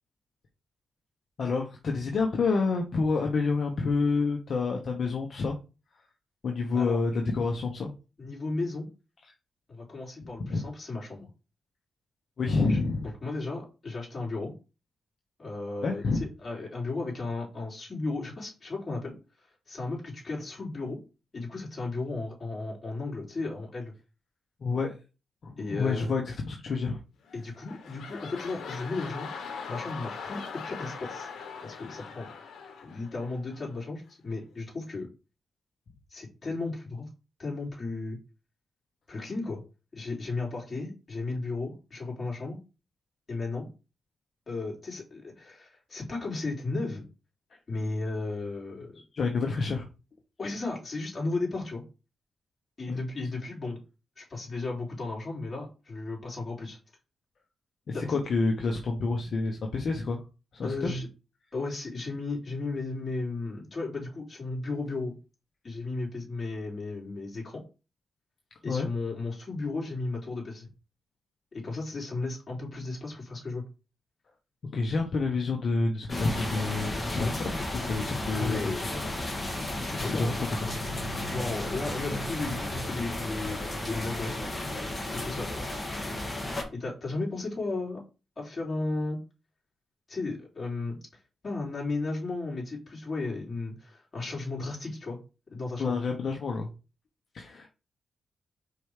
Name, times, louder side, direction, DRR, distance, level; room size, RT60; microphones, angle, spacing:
voice 1, 1.4-5.6 6.4-7.9 10.4-10.6 12.4-13.1 15.8-16.2 24.6-25.0 25.4-27.0 49.1-49.8 52.9-53.0 57.9-60.2 60.5-60.9 68.6-68.9 74.7-78.6 80.0-81.3 95.8-96.7 97.3-97.7, left 4 dB, 60° left, 2 dB, 1.1 m, -28 dB
voice 2, 8.2-8.9 9.7-11.3 12.5-12.8 13.2-14.5 15.4-21.0 21.3-23.9 25.6-26.1 27.3-29.3 29.7-31.3 31.6-32.3 32.8-35.1 36.1-37.1 37.4-38.2 39.1-39.6 39.9-42.6 43.3-43.7 44.5-47.0 47.7-49.0 50.4-51.8 52.8-53.8 54.2-56.8 57.9-58.2 60.6-61.1 61.5-65.2 65.6-67.6 68.6-70.7 71.5-73.6 77.1-77.4 78.3-79.1 79.8-80.4 81.3-84.5 85.0-85.6 86.7-88.0 88.4-89.2 90.1-95.2 95.5-96.0, left 3 dB, 35° left, -3 dB, 3.4 m, -35 dB
sound 1, 27.2-33.8 34.3-34.4, left 5 dB, 85° left, 1.1 m, -41 dB
sound 2, 76.1-86.6, left 1 dB, 20° left, 2.0 m, -33 dB
5.0 x 4.7 x 4.9 m, 0.31 s
cardioid pair, 100°, 0 cm